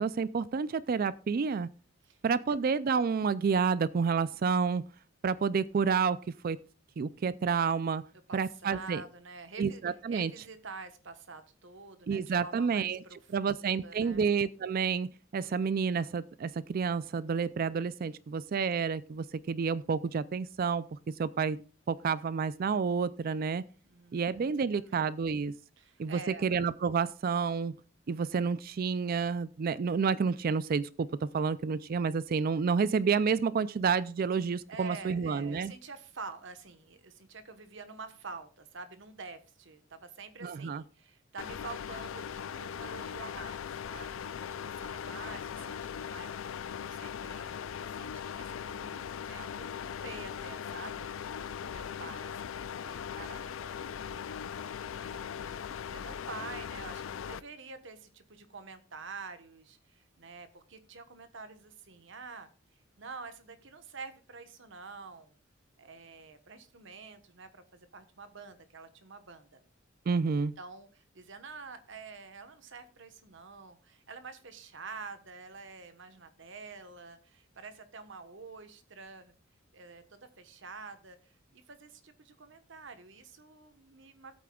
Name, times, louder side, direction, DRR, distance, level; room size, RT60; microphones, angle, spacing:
voice 1, 0.0-1.7 2.2-4.9 5.2-6.6 7.0-8.0 8.3-9.0 9.6-10.3 12.1-13.0 13.3-21.6 21.9-23.6 24.1-25.5 26.0-27.8 28.1-35.7 40.4-40.8 70.1-70.5, right 5 dB, 45° right, 0.4 m, -29 dB
voice 2, 8.3-9.8 10.1-14.2 23.8-24.4 24.9-25.0 25.8-26.5 34.7-52.5 52.8-54.3 55.1-62.5 63.0-65.4 65.8-69.6 70.3-79.3 79.7-84.3, right 4 dB, 65° right, 1.2 m, -47 dB
sound 1, 41.4-57.4, left 8 dB, 75° left, 0.4 m, -39 dB
17.5 x 8.5 x 2.3 m
head